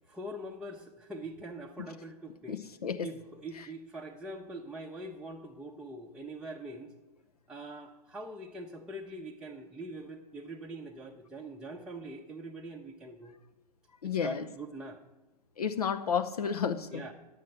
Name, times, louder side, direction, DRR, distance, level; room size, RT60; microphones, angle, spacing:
voice 1, 0.1-2.6 3.0-6.9 7.5-13.3 14.0-15.0 16.9-17.1, right 1 dB, 5° right, -3 dB, 0.7 m, -43 dB
voice 2, 2.5-3.1 14.0-14.4 15.6-17.0, left 7 dB, 65° left, 8 dB, 0.7 m, -31 dB
10.5 x 7.5 x 7.7 m, 1.1 s
figure-of-eight pair, 105°, 21 cm